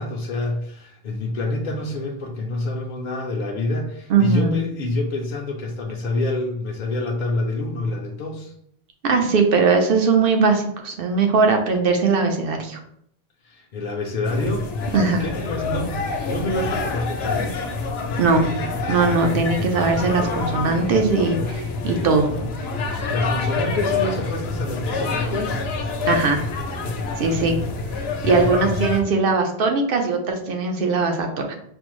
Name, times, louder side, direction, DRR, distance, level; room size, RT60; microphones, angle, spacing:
voice 1, 0.0-8.5 13.4-14.7 15.2-17.6 22.9-25.6 27.2-27.6, left 2 dB, 55° left, -1 dB, 0.6 m, -27 dB
voice 2, 4.1-4.6 9.0-12.8 14.9-15.3 18.2-18.5 18.9-22.3 26.1-26.4 27.2-27.6 28.2-31.6, right 4 dB, 65° right, 3 dB, 0.8 m, -20 dB
sound 1, 14.2-29.0, left 3 dB, 85° left, 0.9 m, -27 dB
5.1 x 2.0 x 3.0 m, 0.68 s
omnidirectional pair, 1.0 m